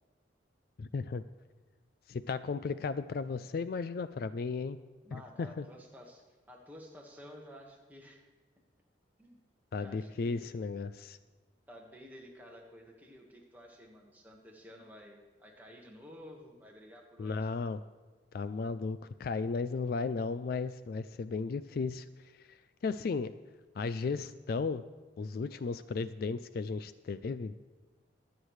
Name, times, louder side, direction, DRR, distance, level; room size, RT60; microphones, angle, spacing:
voice 1, 0.8-1.2 2.1-4.8 5.1-5.6 9.7-11.2 17.2-17.8 18.3-22.6 22.8-23.3 23.8-24.8 25.2-27.5, left 4 dB, 50° left, 13 dB, 0.3 m, -35 dB
voice 2, 5.0-8.2 9.2-9.4 9.7-10.5 11.7-17.5, equal, 10° right, -1 dB, 1.5 m, -52 dB
22.5 x 8.1 x 3.2 m, 1.3 s
head